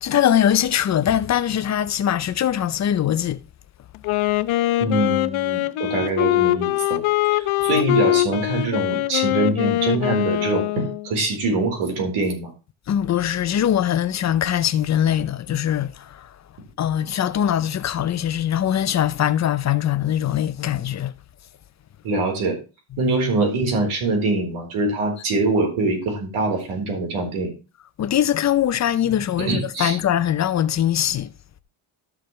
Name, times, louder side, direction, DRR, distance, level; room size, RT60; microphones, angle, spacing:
voice 1, 0.0-3.4 12.9-15.9 16.8-21.1 28.0-31.3, left 10 dB, 35° left, 0.6 m, -21 dB
Wind instrument woodwind instrument, 3.9-11.1, left 17 dB, 80° left, 0.8 m, -22 dB
voice 2, 4.8-7.0 7.3-12.5 22.0-22.6 23.0-27.6 29.4-30.0, right 2 dB, 85° right, 4.2 m, -24 dB
13.0 x 6.7 x 3.2 m
cardioid pair, 150°, 48 cm